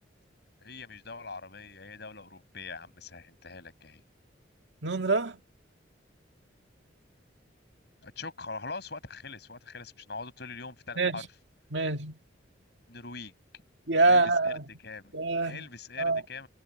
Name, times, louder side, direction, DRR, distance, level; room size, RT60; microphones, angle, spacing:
voice 1, 0.6-4.0 8.0-11.3 12.9-13.3 14.0-14.5 14.8-15.1 15.5-16.5, left 4 dB, 60° left, 6.6 m, -42 dB
voice 2, 4.8-5.4 11.0-11.2 11.7-12.2 13.9-14.6 15.1-15.7 16.0-16.2, right 3 dB, 65° right, 2.1 m, -25 dB
head